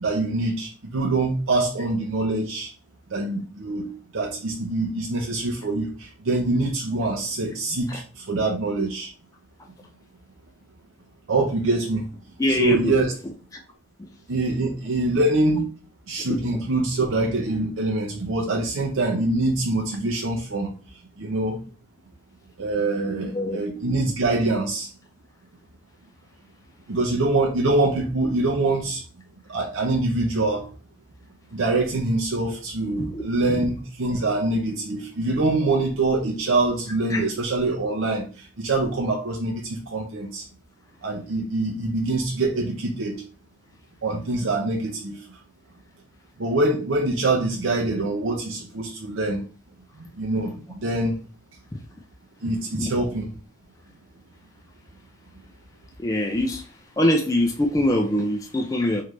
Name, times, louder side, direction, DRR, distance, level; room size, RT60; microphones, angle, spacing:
voice 1, 0.0-2.7 3.1-9.1 11.3-12.0 12.5-13.1 14.3-15.6 16.1-20.7 21.2-21.6 22.6-24.9 26.9-29.0 29.5-30.6 31.5-38.2 38.6-40.4 41.0-43.2 44.0-45.2 46.4-49.4 50.2-51.1 52.4-53.3, right 2 dB, 85° right, 0 dB, 0.7 m, -24 dB
voice 2, 12.4-13.0 14.0-14.1 16.3-16.6 23.0-23.6 33.0-33.2 33.5-33.6 37.1-37.2 52.7-52.9 56.0-56.7 57.0-59.0, left 1 dB, 15° left, 2 dB, 0.3 m, -24 dB
3.7 x 3.3 x 3.1 m, 0.36 s
head